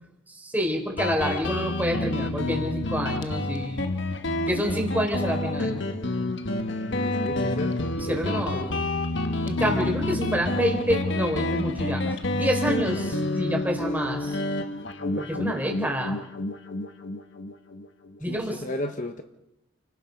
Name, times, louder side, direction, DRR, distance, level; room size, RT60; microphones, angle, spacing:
voice 1, 0.3-3.9 4.5-5.8 8.1-8.8 9.5-12.0 12.3-14.4 15.2-16.2 18.2-18.6, equal, 10° right, 1 dB, 4.0 m, -28 dB
Guitar, 1.0-18.2, left 2 dB, 60° left, 1.4 m, -28 dB
voice 2, 6.9-8.8 18.3-19.2, left 1 dB, 40° left, 7 dB, 1.1 m, -35 dB
29.5 x 18.5 x 5.3 m, 0.89 s
head